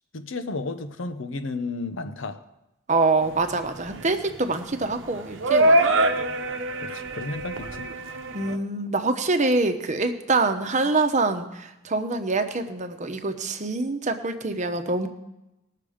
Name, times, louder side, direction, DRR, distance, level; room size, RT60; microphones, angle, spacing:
voice 1, 0.1-2.4 6.8-7.9, left 3 dB, 80° left, 9 dB, 0.9 m, -33 dB
voice 2, 2.9-6.0 8.3-15.1, right 3 dB, 40° right, 7 dB, 0.9 m, -25 dB
sound 1, 3.2-8.6, right 1 dB, 75° right, 0.9 m, -24 dB
19.5 x 6.7 x 5.0 m, 0.94 s
head